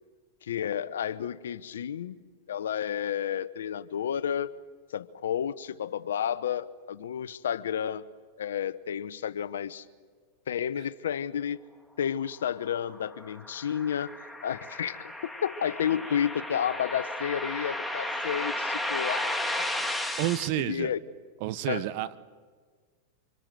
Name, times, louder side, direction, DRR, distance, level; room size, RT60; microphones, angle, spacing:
voice 1, 0.4-2.2 2.5-4.5 4.9-8.1 8.4-9.8 10.5-11.6 12.0-14.1 14.4-19.4 20.6-21.0 21.7-21.9, left 9 dB, 80° left, 16 dB, 0.9 m, -31 dB
sound 1, 12.7-20.5, left 1 dB, ahead, 1.9 m, -34 dB
voice 2, 20.2-20.9 21.4-22.2, right 15 dB, 55° right, 14 dB, 1.1 m, -30 dB
26.5 x 24.0 x 7.7 m, 1.5 s
hypercardioid pair, 105°, 0 cm